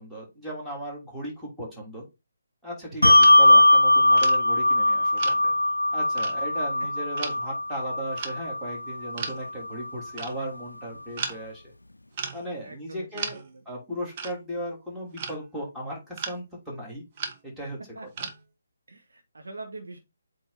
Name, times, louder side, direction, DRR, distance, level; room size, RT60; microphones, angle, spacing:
voice 1, 0.0-2.0 2.6-5.5 5.9-11.7 12.3-13.4 13.6-17.0 17.4-18.1, right 1 dB, 5° right, -5 dB, 3.2 m, -36 dB
Bell, 3.0-9.9, left 1 dB, 80° left, 0.3 m, -20 dB
voice 2, 3.0-3.4 12.6-13.6 17.9-18.3 18.9-20.0, right 2 dB, 65° right, 3 dB, 1.4 m, -43 dB
sound 1, 3.2-3.7 4.2-4.4 5.2-5.7 6.2-6.4 7.2-7.5 8.2-8.5 9.2-9.5 10.2-10.4 11.2-11.4 12.1-12.5 13.2-13.5 14.2-14.4 15.2-15.4 16.2-16.4 17.2-17.4 18.2-18.4, right 6 dB, 30° right, 1.3 m, -35 dB
8.3 x 3.8 x 4.2 m, 0.25 s
figure-of-eight pair, 145°, 0 cm